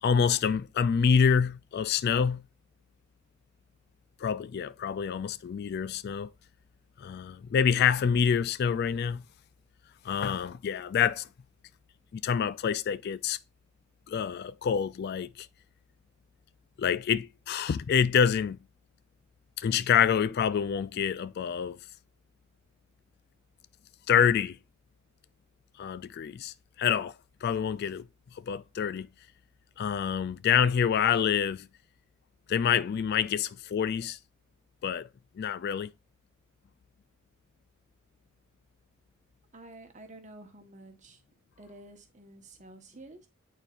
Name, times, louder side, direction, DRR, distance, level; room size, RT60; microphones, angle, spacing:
voice 1, 0.0-2.5 4.2-6.3 7.0-9.2 10.0-11.3 12.1-13.4 14.1-15.5 16.8-18.6 19.6-21.8 24.1-24.6 25.8-27.1 27.4-28.1 28.4-29.1 29.8-31.7 32.5-34.2 34.8-35.1 35.4-35.9, left 7 dB, 50° left, 0.3 m, -27 dB
voice 2, 39.5-41.2 41.6-43.3, right 2 dB, 35° right, 1.2 m, -50 dB
8.9 x 4.2 x 2.5 m
head